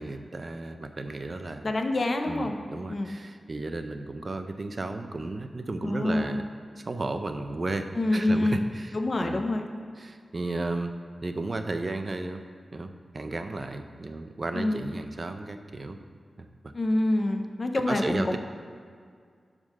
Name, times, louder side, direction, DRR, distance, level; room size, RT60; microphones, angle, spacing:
voice 1, 0.0-1.7 2.3-6.5 6.8-9.4 10.0-10.9 11.2-12.4 12.7-16.0 16.4-16.5 17.9-18.4, right 2 dB, 35° right, 7 dB, 0.5 m, -34 dB
voice 2, 1.6-2.6 2.9-3.1 5.8-6.4 8.0-8.6 8.9-9.7 14.5-14.8 16.7-18.4, left 1 dB, 35° left, 5 dB, 0.6 m, -26 dB
11.0 x 3.7 x 6.5 m, 2.1 s
wide cardioid pair, 150°, 0 cm